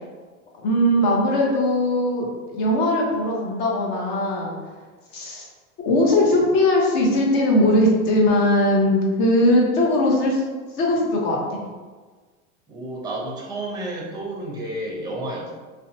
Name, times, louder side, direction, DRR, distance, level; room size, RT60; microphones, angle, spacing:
voice 1, 0.6-2.3 2.5-4.6 5.1-5.5 5.9-10.4 10.8-11.6, left 1 dB, 50° left, -2 dB, 0.8 m, -19 dB
voice 2, 12.7-15.5, right 1 dB, 10° right, -3 dB, 0.5 m, -31 dB
2.6 x 2.2 x 2.7 m, 1.4 s
supercardioid pair, 120°, 41 cm